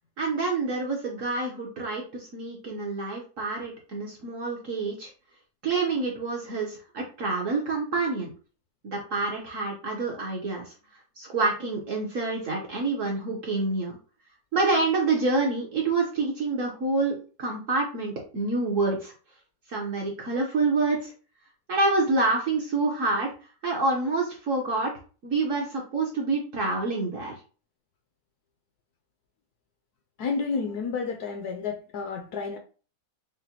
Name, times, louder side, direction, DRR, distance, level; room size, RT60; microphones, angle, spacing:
voice 1, 0.2-5.1 5.6-8.3 8.8-10.7 11.2-14.0 14.5-19.1 19.7-21.1 21.7-23.3 23.6-24.9 25.2-27.4, right 3 dB, 55° right, 0.9 m, -27 dB
voice 2, 30.2-32.6, left 5 dB, 70° left, 1.0 m, -30 dB
4.9 x 2.1 x 2.8 m
omnidirectional pair, 2.0 m